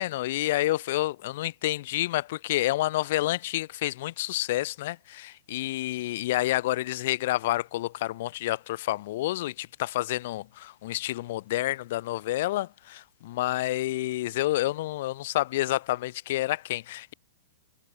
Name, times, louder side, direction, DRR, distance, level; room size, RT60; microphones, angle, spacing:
voice 1, 0.0-17.1, left 16 dB, 55° left, 0.8 m, -29 dB
hypercardioid pair, 135°, 0 cm